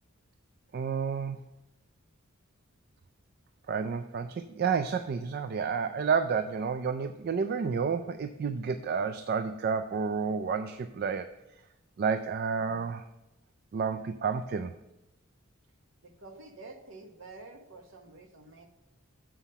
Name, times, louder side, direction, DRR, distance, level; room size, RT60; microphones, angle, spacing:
voice 1, 0.7-1.4 3.7-11.3 12.0-13.0 13.7-14.7, right 6 dB, 45° right, 10 dB, 0.3 m, -30 dB
voice 2, 16.0-18.7, right 3 dB, 65° right, 5 dB, 1.0 m, -49 dB
7.0 x 5.7 x 5.5 m, 0.96 s
head